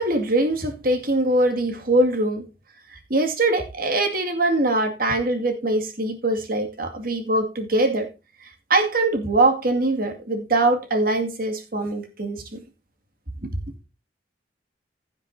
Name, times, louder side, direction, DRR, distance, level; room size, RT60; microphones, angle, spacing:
voice 1, 0.0-2.5 2.9-8.1 8.4-12.6 13.4-13.5, right 2 dB, 55° right, 2.3 m, -22 dB
15.5 x 7.9 x 2.7 m
head